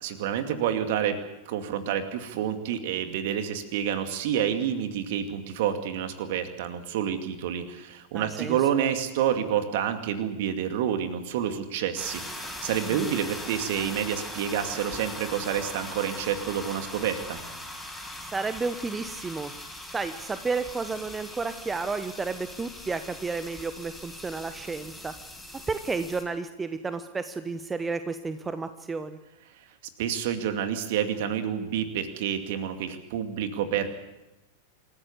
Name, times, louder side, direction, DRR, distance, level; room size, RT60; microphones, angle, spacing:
voice 1, 0.0-1.2 1.5-17.4 30.0-33.9, right 9 dB, 50° right, 8 dB, 2.4 m, -28 dB
voice 2, 8.1-8.6 13.0-13.1 18.3-19.5 19.9-25.1 25.7-29.2, right 4 dB, 15° right, 11 dB, 1.0 m, -32 dB
sound 1, 12.0-26.2, left 1 dB, ahead, 6.3 m, -40 dB
26.5 x 14.5 x 8.4 m, 0.98 s
figure-of-eight pair, 90°, 0 cm